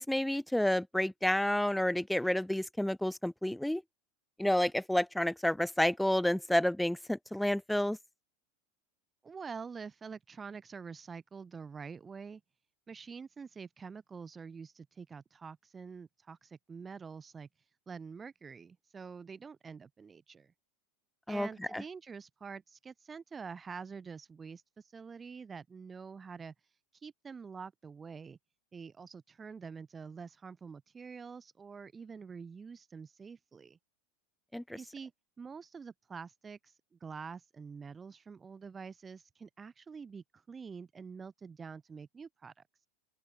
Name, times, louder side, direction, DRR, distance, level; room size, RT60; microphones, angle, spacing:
voice 1, 0.0-3.8 4.4-8.0 21.3-21.5 21.7-21.8 34.5-34.8, left 1 dB, 5° left, 1.1 m, -30 dB
voice 2, 9.2-12.4 12.9-20.5 21.3-28.4 28.7-33.8 34.8-35.1 35.4-42.6, right 5 dB, 20° right, 5.1 m, -46 dB
open air
hypercardioid pair, 95°, 0 cm